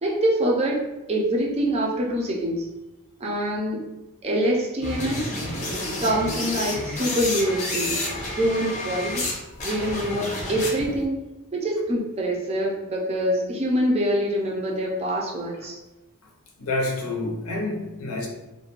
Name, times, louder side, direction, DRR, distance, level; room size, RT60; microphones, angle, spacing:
voice 1, 0.0-2.7 3.2-3.8 4.2-5.3 6.0-8.0 8.4-9.3 9.6-15.8, equal, 30° right, 0.4 m, -25 dB
sound 1, 4.8-9.3 9.6-11.0, left 1 dB, 35° left, 0.6 m, -30 dB
voice 2, 16.6-18.3, left 2 dB, 75° left, 0.6 m, -28 dB
2.4 x 2.1 x 2.9 m
head